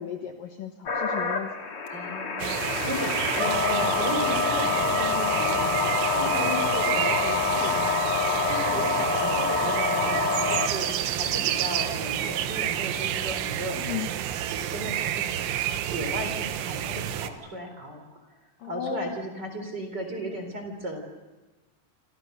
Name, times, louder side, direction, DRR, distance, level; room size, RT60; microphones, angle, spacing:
voice 1, 0.0-1.5 6.4-6.7 13.7-14.1 18.6-19.2, left 9 dB, 65° left, 5 dB, 2.4 m, -35 dB
sound 1, 0.9-10.9, left 5 dB, 40° left, 2.5 m, -26 dB
voice 2, 1.9-8.0 8.5-15.2 15.9-21.0, equal, 25° right, 5 dB, 3.8 m, -35 dB
sound 2, 2.4-17.3, right 11 dB, 85° right, 3.7 m, -29 dB
28.0 x 26.5 x 6.7 m, 1.2 s
omnidirectional pair, 5.4 m